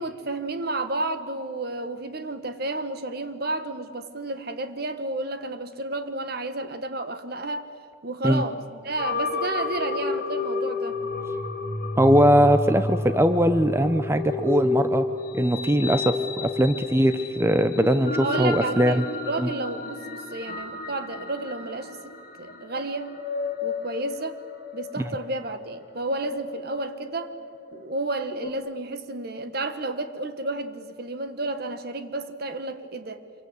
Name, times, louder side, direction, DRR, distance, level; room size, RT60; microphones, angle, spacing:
voice 1, 0.0-7.7 8.0-11.0 18.2-22.1 22.4-23.1 23.6-24.4 24.7-27.3 27.7-33.2, right 2 dB, 55° right, 9 dB, 1.5 m, -31 dB
sound 1, 9.0-28.5, left 3 dB, 50° left, 1.9 m, -31 dB
voice 2, 12.0-15.1 15.3-19.0 19.4-19.5, equal, 15° right, 9 dB, 0.7 m, -20 dB
26.5 x 24.0 x 8.3 m, 2.2 s
head